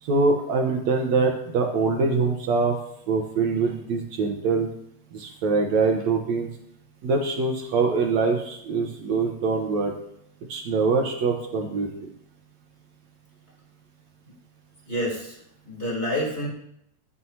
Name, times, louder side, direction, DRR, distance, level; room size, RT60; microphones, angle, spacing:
voice 1, 0.0-2.8 3.1-4.7 5.1-6.5 7.0-9.9 10.5-12.1, right 4 dB, 70° right, 1 dB, 2.4 m, -24 dB
voice 2, 14.9-15.4 15.6-16.5, equal, 20° left, -4 dB, 3.8 m, -28 dB
23.5 x 8.0 x 2.9 m, 0.76 s
omnidirectional pair, 3.5 m